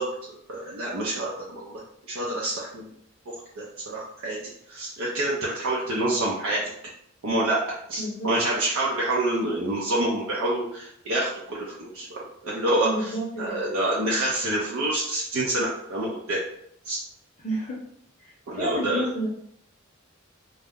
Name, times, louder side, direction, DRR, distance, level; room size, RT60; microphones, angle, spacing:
voice 1, 0.0-2.9 3.3-4.4 4.7-6.6 7.2-7.6 7.9-16.4 16.8-17.0 18.5-19.1, right 1 dB, 85° right, -5 dB, 0.5 m, -27 dB
voice 2, 8.0-8.3 12.8-13.7 17.4-17.8 18.2-19.3, right 1 dB, 35° left, -5 dB, 0.6 m, -30 dB
2.3 x 2.0 x 3.5 m, 0.71 s
head